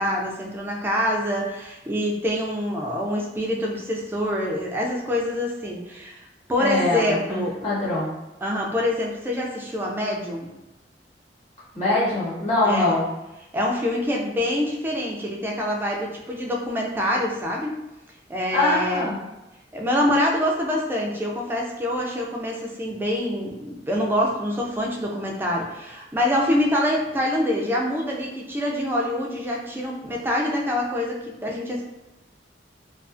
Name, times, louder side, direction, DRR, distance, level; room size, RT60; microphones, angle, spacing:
voice 1, 0.0-6.2 6.5-7.6 8.4-10.5 12.6-13.0 13.5-17.7 18.3-19.1 19.7-31.8, left 1 dB, 10° right, -2 dB, 0.3 m, -25 dB
voice 2, 6.6-8.1 11.7-13.1 18.5-19.2, left 2 dB, 40° left, -7 dB, 1.1 m, -23 dB
2.4 x 2.3 x 2.4 m, 0.98 s
head